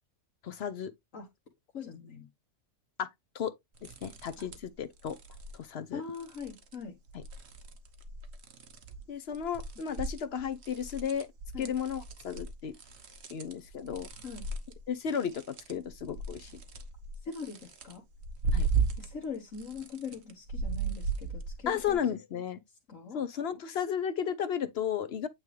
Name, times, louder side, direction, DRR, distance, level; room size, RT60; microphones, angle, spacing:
voice 1, 0.4-0.9 3.0-3.1 3.3-3.5 3.8-5.2 5.5-6.0 7.1-7.2 9.1-11.3 11.6-12.7 13.3-14.1 14.9-16.5 18.5-18.7 21.7-22.6 23.1-25.3, left 8 dB, 60° left, 0.8 m, -34 dB
voice 2, 1.7-2.3 4.4-4.5 5.7-6.9 11.5-11.7 14.2-14.5 17.2-18.0 19.0-22.0 22.9-23.2, left 5 dB, 75° left, 1.7 m, -42 dB
sound 1, 3.8-4.7 5.0-5.6 6.1-6.8 7.1-9.0 9.3-19.3 19.5-22.0, right 4 dB, 60° right, 1.2 m, -36 dB
9.0 x 3.4 x 3.1 m
omnidirectional pair, 1.3 m